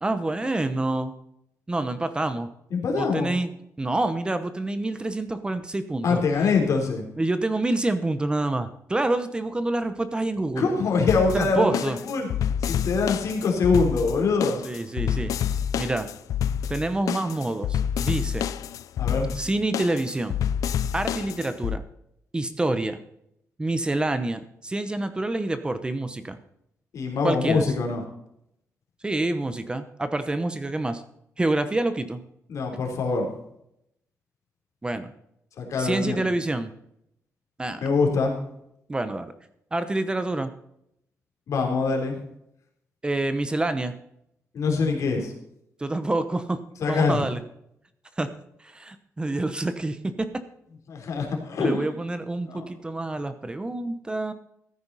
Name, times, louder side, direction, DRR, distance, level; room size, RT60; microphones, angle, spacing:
voice 1, 0.0-1.1 1.7-2.5 2.9-3.5 3.8-6.2 7.2-10.7 11.3-12.0 14.6-15.4 15.7-16.1 16.7-18.5 19.3-20.4 20.9-21.8 22.3-23.0 23.6-26.4 27.2-27.7 29.0-31.0 31.4-32.2 34.8-35.1 35.8-36.7 37.6-37.8 38.9-39.3 39.7-40.5 43.0-43.9 45.8-46.6 46.9-47.4 48.2-48.3 48.6-50.3 51.6-54.3, right 2 dB, 15° right, 11 dB, 0.9 m, -27 dB
voice 2, 2.7-3.3 6.0-7.0 10.6-12.3 12.6-14.6 19.0-19.3 26.9-28.0 32.5-33.3 35.6-36.2 37.8-38.3 41.5-42.2 44.5-45.3 46.8-47.3 50.9-51.8 52.5-52.7, left 4 dB, 70° left, 1 dB, 3.7 m, -24 dB
sound 1, 11.1-21.8, left 9 dB, 85° left, 0.6 m, -28 dB
14.5 x 9.5 x 4.1 m, 0.76 s
cardioid pair, 125°, 6 cm